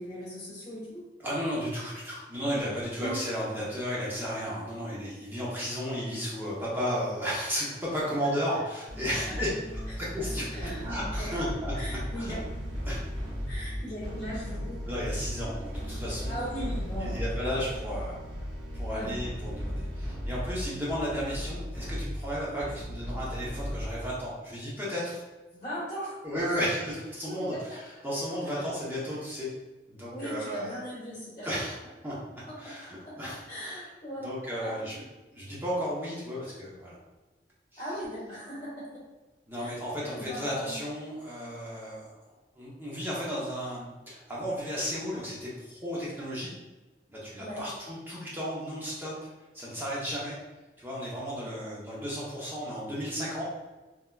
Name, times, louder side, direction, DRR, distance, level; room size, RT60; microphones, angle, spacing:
voice 1, 0.0-1.0 3.0-3.2 3.5-3.6 8.2-8.3 9.3-9.4 10.2-10.8 11.2-11.4 11.7-12.4 13.5-14.8 16.3-17.2 18.9-19.1 25.5-26.1 26.6-26.7 27.3-27.6 30.1-31.5 32.5-32.7 33.0-33.1 33.5-34.7 37.8-38.8 39.6-39.7 40.0-40.8 47.4-47.6 51.4-51.7, equal, 30° left, -9 dB, 1.1 m, -39 dB
voice 2, 1.2-9.5 10.0-12.3 12.8-13.0 14.9-16.4 17.0-18.2 18.7-25.2 26.2-29.5 29.9-30.7 31.4-31.8 32.0-33.8 34.2-35.1 35.3-37.0 37.7-37.8 39.5-42.1 42.6-46.5 47.1-49.1 49.5-50.4 50.8-53.4, equal, 10° right, -7 dB, 0.7 m, -34 dB
sound 1, 8.9-24.3, equal, 80° right, 1.0 m, -36 dB
3.4 x 2.7 x 2.2 m, 1.2 s
head